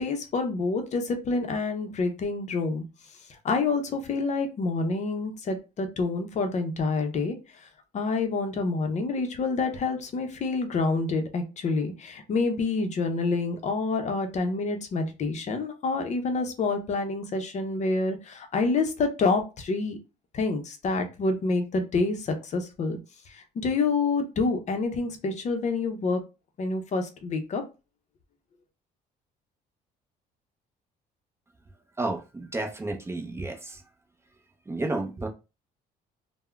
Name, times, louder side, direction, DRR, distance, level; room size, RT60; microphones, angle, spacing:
voice 1, 0.0-2.8 3.4-7.4 7.6-7.7 7.9-20.0 20.3-23.0 23.3-26.2 26.6-27.6, left 3 dB, 45° left, 6 dB, 0.6 m, -27 dB
voice 2, 32.0-33.8 34.7-35.3, right 2 dB, 15° right, 3 dB, 0.5 m, -31 dB
3.5 x 2.0 x 2.2 m, 0.29 s
cardioid pair, 110°, 17 cm